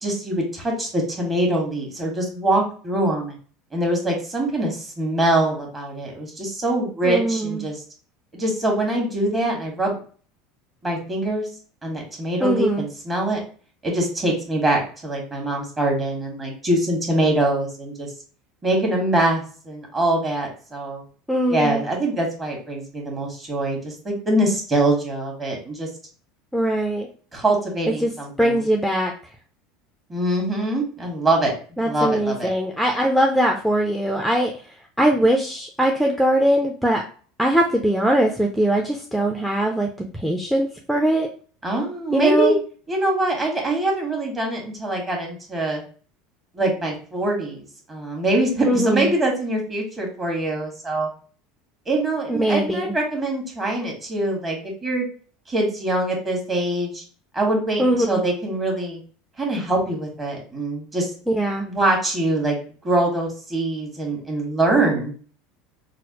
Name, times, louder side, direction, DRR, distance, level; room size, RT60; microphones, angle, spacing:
voice 1, 0.0-3.4 3.7-7.8 8.3-10.0 10.8-11.5 11.8-13.4 13.8-18.1 18.6-21.0 21.5-25.9 27.3-28.6 30.1-32.5 41.6-42.6 42.9-45.8 46.5-51.1 51.9-55.0 55.5-57.0 57.3-59.0 59.4-61.1 61.6-62.6 62.8-65.1, right 1 dB, 25° right, 0 dB, 1.5 m, -23 dB
voice 2, 7.0-7.7 12.4-12.9 21.3-21.8 26.5-27.1 28.0-28.1 28.4-29.1 31.8-34.5 35.0-37.0 37.4-39.9 40.1-41.3 42.1-42.6 48.6-49.1 52.3-52.9 57.8-58.2 61.3-61.7, right 1 dB, ahead, 2 dB, 0.5 m, -21 dB
4.0 x 2.0 x 2.9 m, 0.42 s
hypercardioid pair, 90°, 0 cm